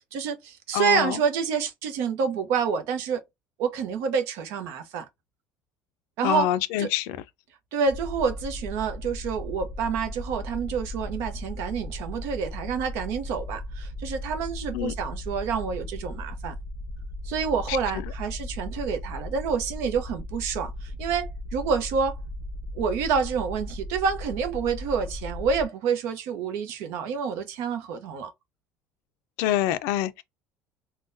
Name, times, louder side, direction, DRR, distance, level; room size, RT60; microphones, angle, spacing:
voice 1, 0.1-3.2 3.6-5.1 6.2-6.5 6.8-6.9 7.7-16.5 17.2-22.2 22.7-28.3, right 6 dB, 60° right, 0.7 m, -28 dB
voice 2, 0.7-1.2 6.2-7.2 14.7-14.9 17.7-17.8 29.4-30.2, left 13 dB, 70° left, 0.4 m, -26 dB
sound 1, 7.9-25.7, left 1 dB, 15° left, 0.8 m, -36 dB
3.7 x 2.2 x 2.5 m
cardioid pair, 180°, 5 cm